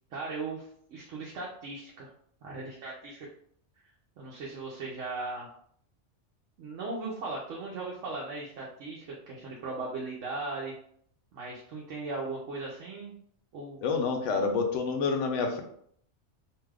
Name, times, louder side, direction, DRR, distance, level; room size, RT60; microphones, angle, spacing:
voice 1, 0.1-2.1 2.4-3.3 4.2-5.5 6.6-10.7 11.3-13.1 13.5-13.8, right 3 dB, 90° right, -3 dB, 1.0 m, -38 dB
voice 2, 13.8-15.6, left 4 dB, 80° left, 4 dB, 0.9 m, -28 dB
2.8 x 2.3 x 3.3 m, 0.64 s
omnidirectional pair, 1.3 m